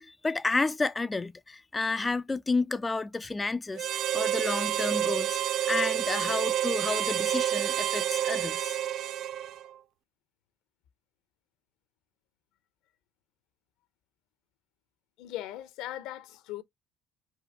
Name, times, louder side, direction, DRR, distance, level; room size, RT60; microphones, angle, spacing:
voice 1, 0.0-3.9 4.1-8.8, left 3 dB, 20° left, 0.4 m, -31 dB
Harmonica, 3.8-9.7, right 11 dB, 60° right, 0.3 m, -29 dB
voice 2, 15.2-16.6, left 13 dB, 70° left, 0.7 m, -39 dB
4.5 x 2.6 x 4.4 m
hypercardioid pair, 70°, 0 cm